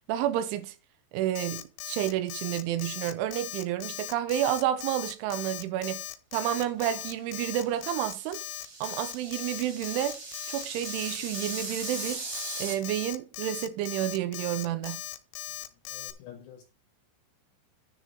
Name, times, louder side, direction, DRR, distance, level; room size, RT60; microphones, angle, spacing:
voice 1, 0.1-0.8 1.1-6.0 6.3-8.4 8.8-10.2 10.5-12.2 12.6-15.0, right 12 dB, 85° right, 3.2 m, -30 dB
Alarm, 1.4-16.1, left 15 dB, 90° left, 3.2 m, -39 dB
sound 1, 7.6-12.7, right 3 dB, 40° right, 1.5 m, -40 dB
voice 2, 15.9-16.6, left 10 dB, 70° left, 3.6 m, -48 dB
9.8 x 5.2 x 5.3 m
omnidirectional pair, 5.6 m